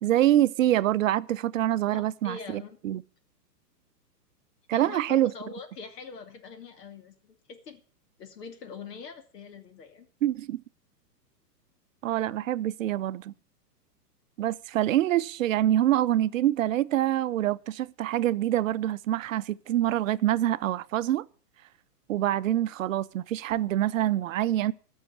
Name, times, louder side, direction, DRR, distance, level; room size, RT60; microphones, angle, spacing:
voice 1, 0.0-3.0 4.7-5.3 10.2-10.6 12.0-13.3 14.4-21.3 22.1-24.7, right 13 dB, 55° right, 0.6 m, -25 dB
voice 2, 1.9-2.8 4.7-7.8 8.2-10.1, left 5 dB, 70° left, 2.8 m, -43 dB
14.0 x 6.4 x 8.6 m
hypercardioid pair, 155°, 50 cm